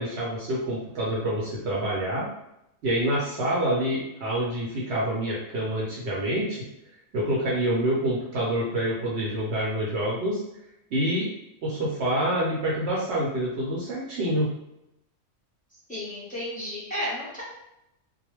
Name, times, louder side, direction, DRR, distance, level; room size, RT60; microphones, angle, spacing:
voice 1, 0.0-2.3 2.8-6.6 7.1-10.4 10.9-11.3 11.6-14.5, right 1 dB, 65° right, -6 dB, 0.9 m, -27 dB
voice 2, 15.9-17.4, left 1 dB, 5° left, -9 dB, 1.0 m, -32 dB
2.3 x 2.1 x 3.0 m, 0.84 s
omnidirectional pair, 1.3 m